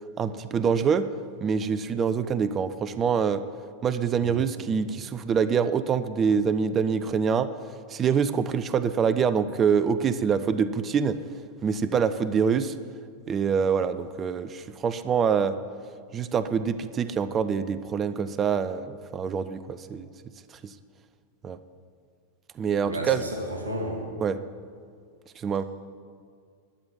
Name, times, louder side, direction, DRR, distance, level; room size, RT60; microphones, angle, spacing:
voice 1, 0.2-1.1 1.4-3.4 3.8-7.5 7.9-11.2 11.6-12.7 13.3-15.5 16.1-20.1 21.4-21.6 22.6-23.2 24.2-24.4 25.4-25.6, right 6 dB, 25° right, 13 dB, 0.6 m, -25 dB
voice 2, 22.8-24.1, equal, 80° right, 1 dB, 2.1 m, -33 dB
12.5 x 9.7 x 9.8 m, 2.1 s
figure-of-eight pair, 90°, 0 cm